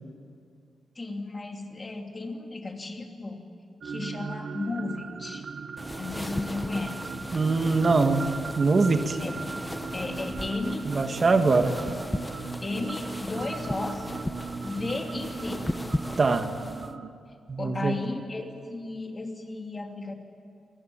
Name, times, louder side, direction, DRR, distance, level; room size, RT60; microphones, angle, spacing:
voice 1, 0.9-3.4 3.8-5.5 6.0-7.2 9.2-9.4 9.9-10.9 12.6-14.1 14.6-15.7 17.6-20.1, left 2 dB, 30° left, 3 dB, 2.9 m, -34 dB
sound 1, 3.8-17.1, right 5 dB, 60° right, 1.0 m, -38 dB
sound 2, 5.8-16.9, left 1 dB, 15° left, 0.9 m, -37 dB
voice 2, 7.3-8.3 8.6-9.2 10.8-11.8 16.2-16.5 17.5-18.0, right 3 dB, 45° right, 7 dB, 1.6 m, -22 dB
27.0 x 18.5 x 8.9 m, 2.3 s
cardioid pair, 80°, 0 cm